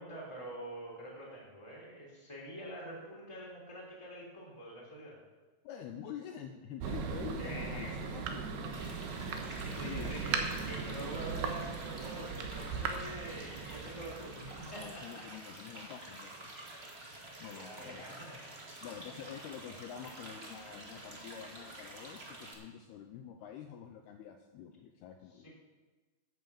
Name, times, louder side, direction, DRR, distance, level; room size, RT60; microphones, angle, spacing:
voice 1, 0.0-5.2 7.4-7.9 9.6-15.2 16.1-16.2 17.5-18.6 21.5-21.6 25.3-25.6, right 1 dB, 5° left, -4 dB, 3.0 m, -46 dB
voice 2, 5.6-8.9 9.6-10.2 14.8-16.3 17.4-18.3 18.8-25.5, left 9 dB, 80° left, 4 dB, 2.5 m, -47 dB
Thunder, 6.8-15.1, right 5 dB, 75° right, 2.9 m, -38 dB
sound 1, 8.7-22.5, right 1 dB, 35° right, 0.9 m, -49 dB
11.0 x 8.7 x 7.3 m, 1.3 s
omnidirectional pair, 4.9 m